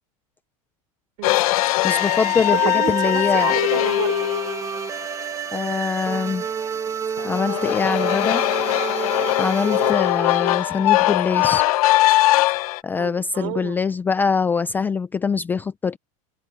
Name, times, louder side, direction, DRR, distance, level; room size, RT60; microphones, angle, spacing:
sound 1, 1.2-5.3 7.2-12.8, left 18 dB, 80° left, 0.8 m, -21 dB
voice 1, 1.2-1.5 2.5-4.3 13.0-13.8, right 28 dB, 55° right, 4.1 m, -30 dB
voice 2, 1.8-3.5 5.5-6.5 7.2-8.5 9.4-11.6 12.8-16.0, left 5 dB, 10° left, 0.4 m, -23 dB
sound 2, 1.9-11.8, right 7 dB, 15° right, 1.9 m, -30 dB
supercardioid pair, 165°, 18 cm